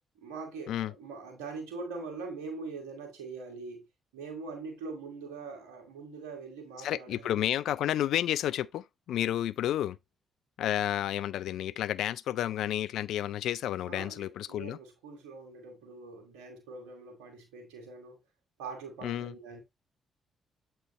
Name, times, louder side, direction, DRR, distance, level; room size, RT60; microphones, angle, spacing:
voice 1, 0.2-3.9 4.1-7.5 13.9-18.2 18.6-19.6, right 4 dB, 85° right, 2.1 m, -43 dB
voice 2, 6.8-10.0 10.6-14.8 19.0-19.3, left 12 dB, 75° left, 0.3 m, -31 dB
8.1 x 4.4 x 3.1 m
hypercardioid pair, 45°, 0 cm